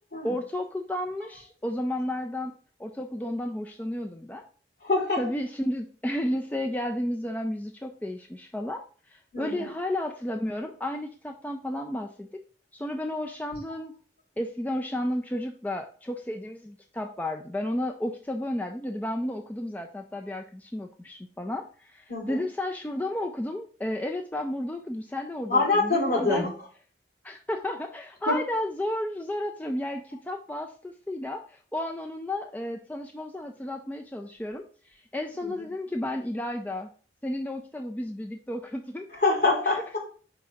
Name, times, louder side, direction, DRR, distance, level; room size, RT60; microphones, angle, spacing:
voice 1, 0.2-4.5 5.2-12.3 12.7-13.9 14.4-26.5 27.2-36.9 37.2-39.1, left 1 dB, 10° left, 3 dB, 0.4 m, -32 dB
voice 2, 4.8-5.2 9.3-9.7 22.1-22.4 25.5-26.5 28.3-28.4 35.4-35.7 39.1-40.0, left 3 dB, 55° left, -4 dB, 3.3 m, -25 dB
5.1 x 3.7 x 5.7 m, 0.42 s
head